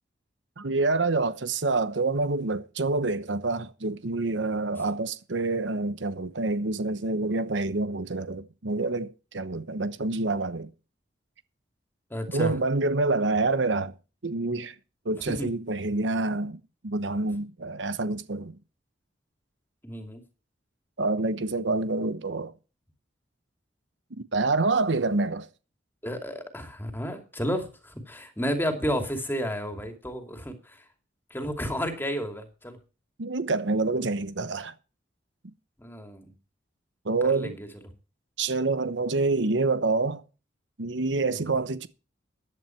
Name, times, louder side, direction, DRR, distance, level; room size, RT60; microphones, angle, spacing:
voice 1, 0.6-10.7 12.3-13.9 14.2-14.7 15.0-18.6 21.0-22.5 24.3-25.5 33.2-34.7 37.0-37.6 38.4-40.2 40.8-41.9, right 3 dB, 75° right, 1.0 m, -27 dB
voice 2, 12.1-12.5 15.4-15.5 19.8-20.2 26.0-30.5 31.3-32.8 35.8-36.3 37.2-37.7 41.3-41.5, equal, 10° left, 2.6 m, -32 dB
15.0 x 11.0 x 4.6 m
head